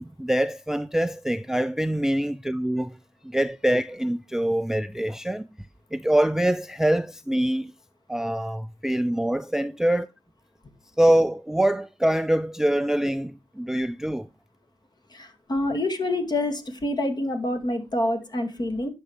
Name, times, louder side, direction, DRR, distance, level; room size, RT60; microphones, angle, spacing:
voice 1, 0.0-3.0 3.2-5.5 5.9-7.7 8.1-10.1 11.0-14.3, right 1 dB, 5° right, 0.3 m, -24 dB
voice 2, 15.1-18.9, left 1 dB, 40° left, 2.2 m, -27 dB
10.5 x 6.1 x 3.3 m
cardioid pair, 80°, 11 cm